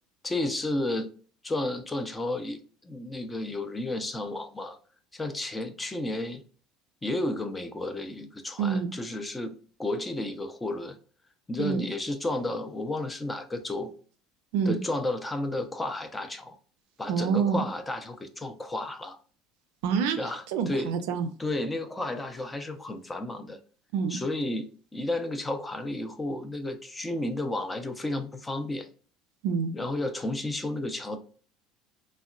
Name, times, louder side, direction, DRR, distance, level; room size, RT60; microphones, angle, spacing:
voice 1, 0.2-1.1 1.4-4.8 5.1-6.4 7.0-9.5 9.8-11.0 11.5-13.9 14.7-16.6 17.0-19.2 20.2-20.9 21.4-23.6 24.1-28.9 29.7-31.2, left 2 dB, 15° left, 0.5 m, -32 dB
voice 2, 8.6-8.9 11.6-11.8 14.5-14.8 17.1-17.6 19.8-21.3 23.9-24.2 29.4-29.7, right 6 dB, 75° right, 0.4 m, -27 dB
3.5 x 2.2 x 2.3 m
hypercardioid pair, 75°, 0 cm